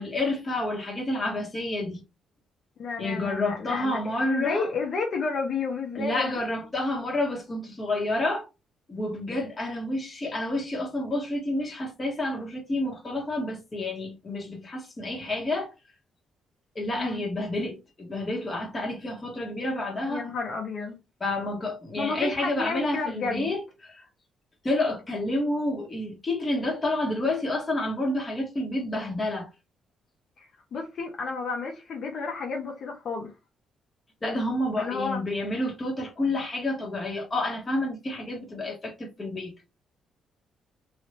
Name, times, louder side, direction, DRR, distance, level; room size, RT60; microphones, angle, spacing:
voice 1, 0.0-2.0 3.0-4.7 5.9-8.5 8.9-15.7 16.7-20.3 21.2-24.0 24.6-29.5 34.2-39.6, left 1 dB, 25° left, 1.5 m, -29 dB
voice 2, 2.8-4.0 4.2-6.4 16.9-17.2 20.1-20.9 22.0-23.5 30.4-33.3 34.8-35.2, left 4 dB, 60° left, 1.0 m, -31 dB
3.2 x 2.8 x 2.7 m
cardioid pair, 90°, 0 cm